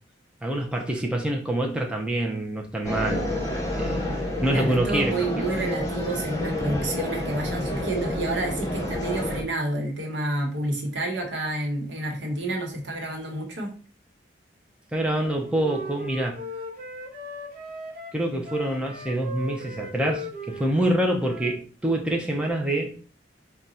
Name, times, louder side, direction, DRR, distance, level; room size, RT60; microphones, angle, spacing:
voice 1, 0.4-3.3 3.8-5.1 14.9-16.4 18.1-22.9, right 1 dB, 5° right, 0.6 m, -26 dB
sound 1, 2.8-9.4, left 1 dB, 20° left, 1.0 m, -29 dB
voice 2, 4.5-13.7, right 1 dB, 80° right, 1.1 m, -29 dB
Wind instrument woodwind instrument, 15.2-21.6, left 1 dB, 55° right, 1.1 m, -38 dB
3.8 x 2.3 x 4.2 m
head